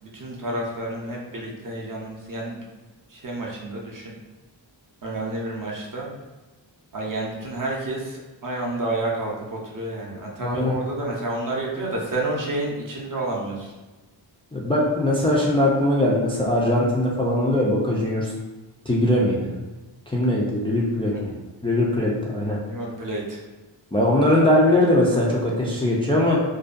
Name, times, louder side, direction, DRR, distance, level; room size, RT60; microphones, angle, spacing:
voice 1, 0.0-2.6 3.1-4.1 5.0-6.1 6.9-13.7 21.1-21.2 22.7-23.4, right 2 dB, 45° right, -2 dB, 0.6 m, -30 dB
voice 2, 10.4-10.7 14.5-18.3 18.9-19.5 20.1-21.3 21.6-22.6 23.9-26.4, left 1 dB, 15° left, -4 dB, 0.3 m, -21 dB
2.5 x 2.2 x 2.4 m, 1.2 s
wide cardioid pair, 75°, 46 cm